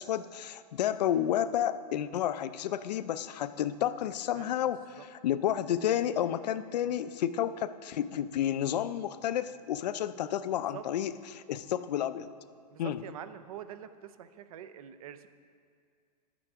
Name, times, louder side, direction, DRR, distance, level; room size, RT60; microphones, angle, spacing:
voice 1, 0.0-12.3 12.8-13.0, left 10 dB, 75° left, 14 dB, 0.4 m, -31 dB
voice 2, 4.3-4.7 5.0-5.1 10.5-10.9 12.7-15.3, right 10 dB, 60° right, 12 dB, 0.5 m, -45 dB
11.0 x 8.9 x 3.5 m, 2.2 s
supercardioid pair, 175°, 21 cm